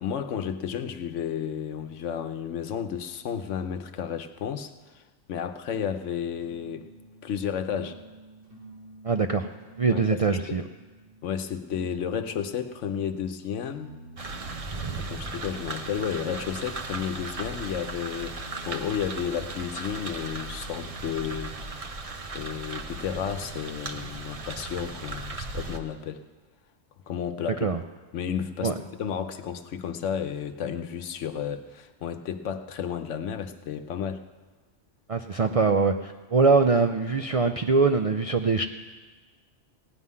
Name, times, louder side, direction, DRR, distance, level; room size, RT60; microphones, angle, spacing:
voice 1, 0.0-5.0 5.3-6.8 7.2-8.0 9.9-10.6 11.2-13.9 15.0-21.9 22.3-26.2 27.1-27.7 28.1-28.7 29.0-34.2, left 8 dB, 85° left, 9 dB, 1.1 m, -32 dB
sound 1, 6.2-12.9 13.7-21.8, equal, 80° right, 4.6 m, -49 dB
voice 2, 9.0-9.5 9.8-10.6 27.6-27.8 28.6-28.7 35.1-38.6, right 4 dB, 60° right, 6 dB, 0.3 m, -23 dB
sound 2, 14.2-25.8, right 3 dB, 35° right, 0.8 m, -37 dB
16.5 x 5.6 x 9.5 m, 1.3 s
omnidirectional pair, 1.2 m